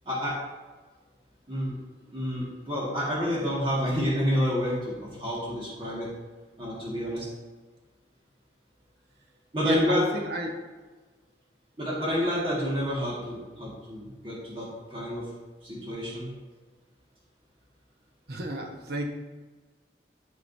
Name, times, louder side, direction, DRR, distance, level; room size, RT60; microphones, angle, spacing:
voice 1, 2.1-6.1 6.6-7.3 9.5-10.0 11.8-15.2 15.6-16.3, equal, 30° right, -6 dB, 1.8 m, -29 dB
voice 2, 9.6-10.6 18.3-19.1, right 1 dB, 60° right, 2 dB, 1.1 m, -30 dB
12.0 x 5.0 x 2.7 m, 1.3 s
head